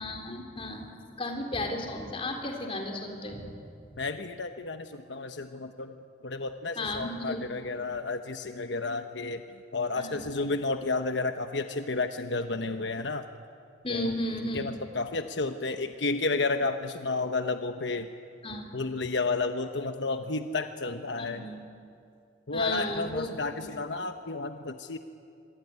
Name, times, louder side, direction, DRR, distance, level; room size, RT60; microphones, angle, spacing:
voice 1, 0.0-3.5 6.8-7.5 10.0-10.3 13.8-14.7 18.4-18.7 21.2-21.6 22.5-23.3 23.6-23.7, left 1 dB, 30° left, 3 dB, 3.9 m, -34 dB
voice 2, 4.0-6.0 6.2-9.4 9.7-13.2 13.9-14.1 14.5-18.1 18.7-21.4 22.5-25.0, left 3 dB, 80° left, 7 dB, 1.1 m, -31 dB
25.0 x 23.0 x 9.6 m, 2.5 s
head